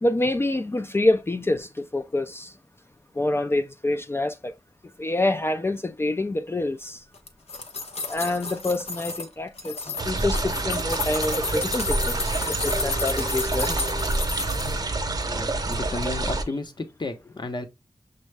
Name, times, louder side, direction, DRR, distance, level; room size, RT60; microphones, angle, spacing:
voice 1, 0.0-2.5 3.2-4.5 5.0-7.0 8.1-14.2, left 2 dB, 25° left, 0.3 m, -27 dB
sound 1, 7.1-9.3 9.6-14.8 15.2-16.0, left 3 dB, 90° left, 0.7 m, -32 dB
sound 2, 10.0-16.4, right 2 dB, 40° right, 0.6 m, -27 dB
voice 2, 15.3-17.7, left 2 dB, 45° left, 0.8 m, -33 dB
6.3 x 2.1 x 3.3 m
wide cardioid pair, 90°, 10 cm